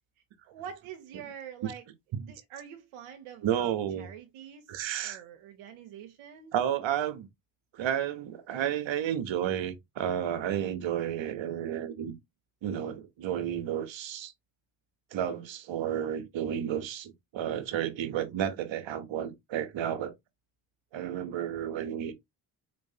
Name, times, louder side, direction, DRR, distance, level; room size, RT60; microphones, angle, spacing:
voice 1, 0.4-1.9 2.2-6.5, right 8 dB, 85° right, 0.8 m, -46 dB
voice 2, 3.4-4.1 4.7-5.2 6.5-7.3 7.7-12.1 12.6-14.3 15.1-20.1 20.9-22.1, right 10 dB, 65° right, 1.0 m, -32 dB
4.0 x 3.0 x 2.7 m
supercardioid pair, 60°, 49 cm